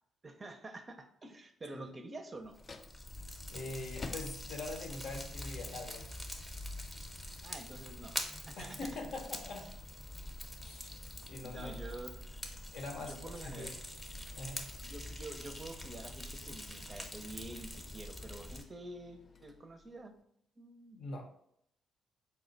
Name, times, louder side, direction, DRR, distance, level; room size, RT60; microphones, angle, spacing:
voice 1, 0.2-2.6 7.4-8.2 8.5-8.9 11.4-12.1 13.0-13.7 14.8-20.1 20.6-21.0, right 2 dB, 30° right, 6 dB, 0.5 m, -48 dB
Fire, 2.4-18.6, left 1 dB, 15° left, 0.7 m, -45 dB
sound 1, 2.5-20.2, left 3 dB, 40° left, 0.4 m, -57 dB
voice 2, 3.5-6.1 8.6-9.7 10.6-10.9 11.2-11.7 12.7-13.2 13.4-13.8 14.4-14.7 20.9-21.3, left 2 dB, 70° left, 3 dB, 0.7 m, -43 dB
4.2 x 2.1 x 3.8 m, 0.72 s
cardioid pair, 90°, 0 cm